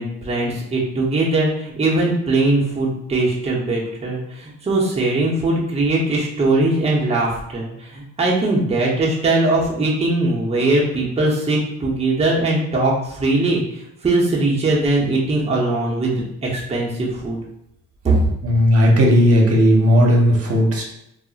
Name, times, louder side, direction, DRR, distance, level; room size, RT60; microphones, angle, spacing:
voice 1, 0.0-17.4 18.0-18.2, right 2 dB, 20° right, -4 dB, 0.7 m, -20 dB
voice 2, 18.4-20.8, equal, 50° right, -1 dB, 0.8 m, -15 dB
2.4 x 2.0 x 3.9 m, 0.79 s
cardioid pair, 90°, 30 cm